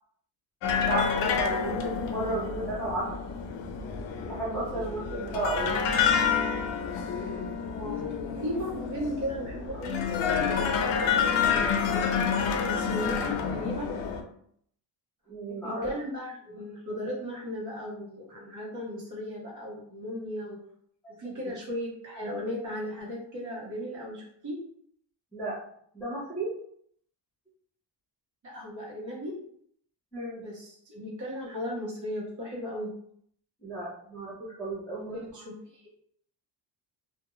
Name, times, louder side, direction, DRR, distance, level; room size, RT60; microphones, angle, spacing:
sound 1, 0.6-14.2, left 6 dB, 80° left, 0.5 m, -28 dB
voice 1, 0.8-3.2 4.2-5.8 15.3-15.9 21.2-21.3 25.3-25.6 25.9-26.5 30.1-30.4 33.6-35.2, right 2 dB, 5° left, -10 dB, 0.7 m, -33 dB
voice 2, 7.6-10.0 10.4-10.8 11.5-12.1 12.6-13.9 15.5-20.6 21.2-24.6 28.4-29.3 30.4-32.9 34.9-35.8, equal, 45° right, -4 dB, 0.9 m, -36 dB
2.4 x 2.2 x 3.0 m, 0.66 s
cardioid pair, 170°, 43 cm